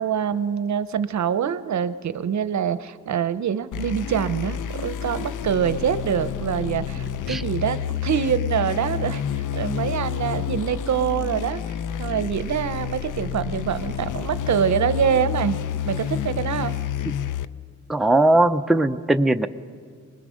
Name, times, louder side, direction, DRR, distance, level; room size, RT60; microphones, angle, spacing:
voice 1, 0.0-11.6 12.0-15.6 15.8-16.8, right 8 dB, 65° right, 13 dB, 0.7 m, -25 dB
sound 1, 3.7-17.5, left 9 dB, 80° left, 0.6 m, -29 dB
voice 2, 17.9-19.5, right 2 dB, ahead, 7 dB, 0.5 m, -19 dB
25.0 x 20.5 x 6.3 m, 2.1 s
cardioid pair, 90°, 31 cm